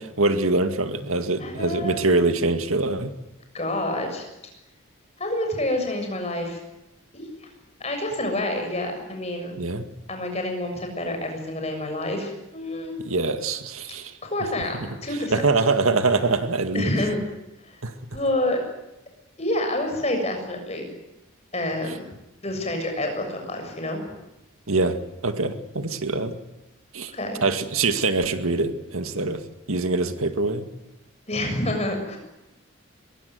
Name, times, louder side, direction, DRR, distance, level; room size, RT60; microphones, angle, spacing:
voice 1, 0.2-3.1 9.6-9.9 13.0-14.1 15.3-16.9 17.8-17.9 21.9-22.0 24.7-25.0 25.2-26.4 26.9-27.1 27.4-29.4 29.7-30.7, right 3 dB, 75° right, 8 dB, 2.1 m, -24 dB
voice 2, 1.4-2.0 3.5-4.3 5.2-6.6 7.1-7.2 7.8-9.5 10.1-12.9 14.2-15.5 16.7-17.2 17.6-17.8 18.1-18.6 19.4-20.9 21.5-22.1 22.4-24.0 27.1-27.4 31.3-32.2, left 1 dB, 30° left, 4 dB, 6.9 m, -28 dB
24.0 x 22.0 x 9.6 m, 0.93 s
head